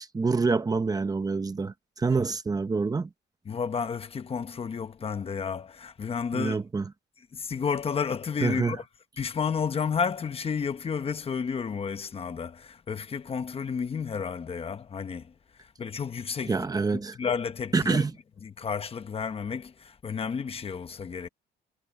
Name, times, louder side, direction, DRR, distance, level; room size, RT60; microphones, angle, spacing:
voice 1, 0.0-3.1 6.3-6.9 8.4-8.8 16.4-17.2 17.7-18.1, right 4 dB, 20° right, 0.9 m, -27 dB
voice 2, 3.5-6.6 7.3-8.8 9.2-15.3 15.8-16.6 17.2-18.0 18.4-21.3, left 6 dB, 30° left, 1.0 m, -31 dB
cardioid pair, 145°, 19 cm